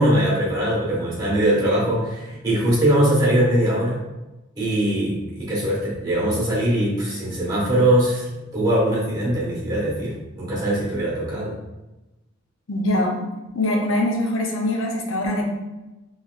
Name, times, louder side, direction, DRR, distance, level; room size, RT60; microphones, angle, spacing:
voice 1, 0.0-4.0 4.6-8.3 8.5-11.5, right 1 dB, 20° right, -6 dB, 1.3 m, -21 dB
voice 2, 12.7-13.2 13.5-15.5, left 1 dB, 75° left, 1 dB, 0.6 m, -23 dB
3.9 x 3.2 x 2.4 m, 1.0 s
head